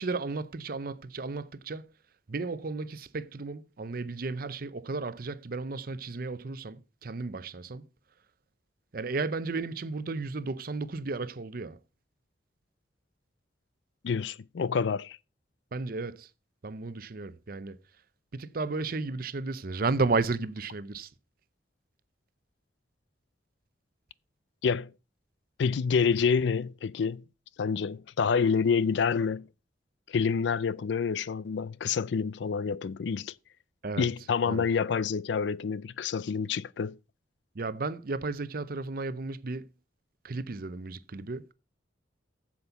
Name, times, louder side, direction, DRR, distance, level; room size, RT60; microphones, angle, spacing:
voice 1, 0.0-1.9 2.3-7.9 8.9-11.8 15.7-16.3 16.6-17.8 18.3-21.1 33.8-34.1 34.5-34.7 37.6-39.7 40.2-41.5, right 3 dB, 50° right, 0.6 m, -33 dB
voice 2, 14.0-15.2 24.6-24.9 25.6-27.2 27.6-29.5 30.1-33.3 34.0-37.0, left 6 dB, 70° left, 0.4 m, -28 dB
7.9 x 7.4 x 5.7 m
head